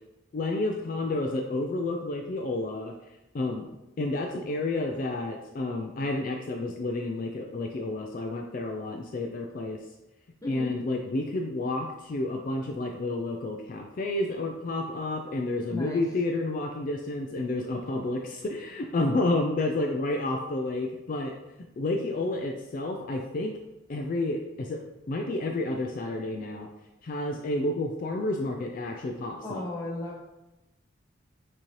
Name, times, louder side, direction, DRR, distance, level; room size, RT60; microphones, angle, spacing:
voice 1, 0.3-2.9 3.3-3.7 4.0-9.8 10.5-21.3 21.8-23.5 23.9-26.7 27.0-29.6, left 2 dB, 40° left, 2 dB, 0.3 m, -30 dB
voice 2, 10.4-10.8 15.7-16.1 28.9-29.1 29.4-30.3, left 1 dB, 15° left, -4 dB, 0.9 m, -35 dB
6.1 x 2.8 x 3.0 m, 0.98 s
head